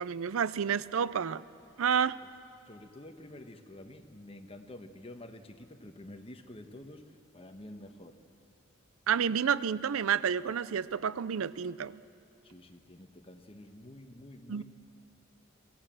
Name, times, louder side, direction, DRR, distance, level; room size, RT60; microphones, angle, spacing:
voice 1, 0.0-1.4 1.8-2.2 9.1-12.0 14.5-14.6, right 7 dB, 85° right, 18 dB, 0.5 m, -30 dB
voice 2, 2.7-8.2 12.4-14.6, left 1 dB, 25° left, 6 dB, 1.2 m, -49 dB
23.5 x 17.0 x 7.6 m, 2.6 s
head